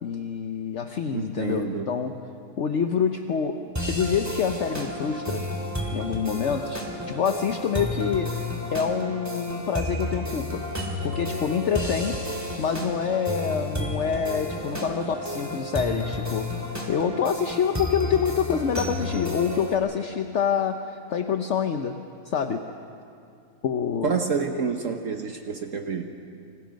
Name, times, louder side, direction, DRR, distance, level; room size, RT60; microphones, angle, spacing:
voice 1, 0.0-2.2 2.6-3.6 3.9-5.5 5.9-10.6 11.0-12.2 12.6-16.5 16.9-22.0 22.2-22.6 23.6-24.1 24.5-24.6, left 7 dB, 55° left, 6 dB, 1.1 m, -26 dB
voice 2, 1.1-1.9 24.0-26.1, right 5 dB, 60° right, 4 dB, 1.4 m, -28 dB
sound 1, 3.8-19.8, left 1 dB, 10° right, 2.5 m, -31 dB
28.5 x 26.0 x 5.2 m, 2.5 s
omnidirectional pair, 1.5 m